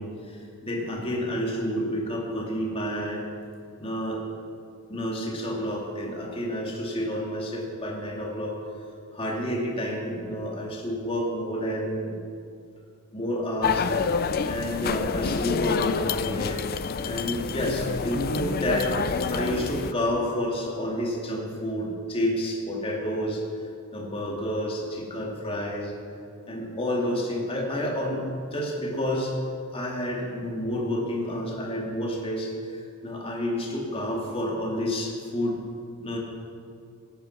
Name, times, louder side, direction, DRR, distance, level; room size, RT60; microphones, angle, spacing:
voice 1, 0.0-3.2 3.8-4.2 4.9-8.6 9.1-12.2 13.1-13.9 14.4-16.6 17.0-19.0 19.3-23.4 23.9-26.0 26.5-29.3 29.7-35.6 36.0-36.2, equal, 25° left, -2 dB, 2.3 m, -29 dB
sound 1, 13.6-19.9, left 5 dB, 40° left, 0.4 m, -28 dB
17.0 x 9.1 x 5.8 m, 2.4 s
head